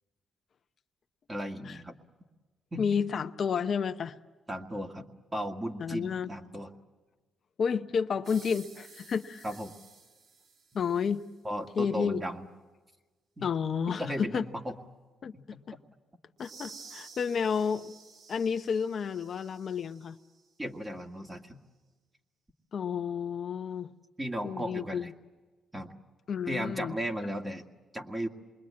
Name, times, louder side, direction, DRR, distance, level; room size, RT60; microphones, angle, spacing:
voice 1, 1.3-1.9 2.7-2.9 4.5-6.7 9.4-9.7 11.4-12.5 13.4-13.5 13.9-14.8 15.3-15.8 20.6-21.6 24.2-25.1 25.7-25.9 26.5-27.7 27.9-28.3, equal, 20° right, 3 dB, 2.0 m, -36 dB
voice 2, 2.8-4.2 5.8-6.3 7.6-9.4 10.7-11.2 11.8-12.2 13.4-14.4 15.2-15.3 15.7-15.8 16.4-17.9 18.3-20.2 22.7-23.9 24.4-25.1 26.3-27.0, left 6 dB, 55° left, 8 dB, 0.7 m, -31 dB
sound 1, 8.2-11.3 16.4-20.4, right 5 dB, 65° right, 1.6 m, -52 dB
27.5 x 21.5 x 8.6 m, 1.3 s
cardioid pair, 85°, 0 cm